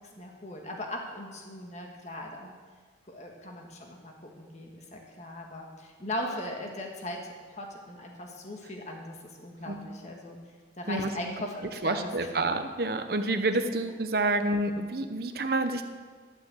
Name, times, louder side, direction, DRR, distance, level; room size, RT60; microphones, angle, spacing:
voice 1, 0.2-2.5 3.1-10.4 10.8-11.5 11.8-12.3, left 1 dB, 40° left, 1 dB, 1.6 m, -39 dB
voice 2, 11.8-15.8, right 2 dB, 55° right, 8 dB, 0.8 m, -28 dB
12.5 x 6.0 x 7.9 m, 1.5 s
head